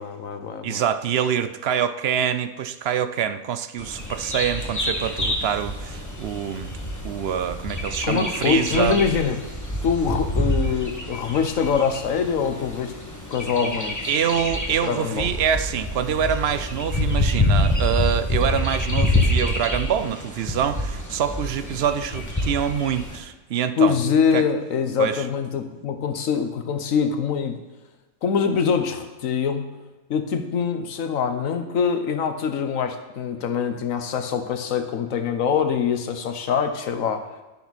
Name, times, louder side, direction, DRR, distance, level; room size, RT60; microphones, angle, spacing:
voice 1, 0.0-0.8 8.0-9.4 9.8-12.9 13.3-14.0 14.8-15.3 23.8-27.6 28.2-29.8 30.1-37.3, left 6 dB, 85° left, 8 dB, 1.3 m, -24 dB
voice 2, 0.6-6.8 7.0-9.0 14.1-24.0 24.3-24.4 25.0-25.2, right 8 dB, 60° right, 11 dB, 0.8 m, -25 dB
Bird vocalization bird call bird song, 3.8-23.2, left 1 dB, 15° left, 1.6 m, -27 dB
10.5 x 10.5 x 4.2 m, 1.1 s
omnidirectional pair, 1.3 m